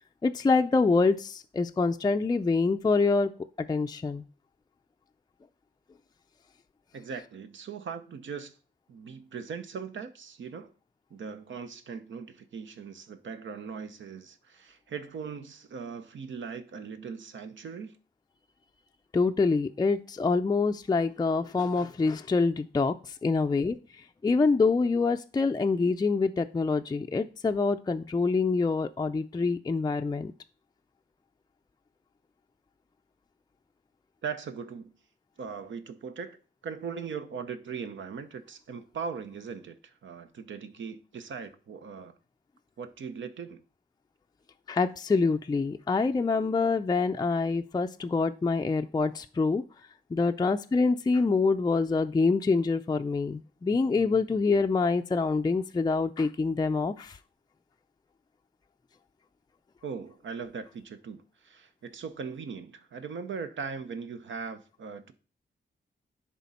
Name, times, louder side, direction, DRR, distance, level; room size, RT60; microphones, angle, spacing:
voice 1, 0.2-3.3 3.6-4.2 19.1-23.8 24.2-30.3 44.7-49.6 50.1-57.2, left 4 dB, 20° left, 0.4 m, -26 dB
voice 2, 6.9-8.5 8.9-10.7 11.1-17.9 34.2-35.0 35.4-36.4 36.6-42.2 42.8-43.6 59.8-65.1, right 6 dB, 75° right, 0.8 m, -39 dB
10.5 x 3.7 x 4.1 m
cardioid pair, 85°, 20 cm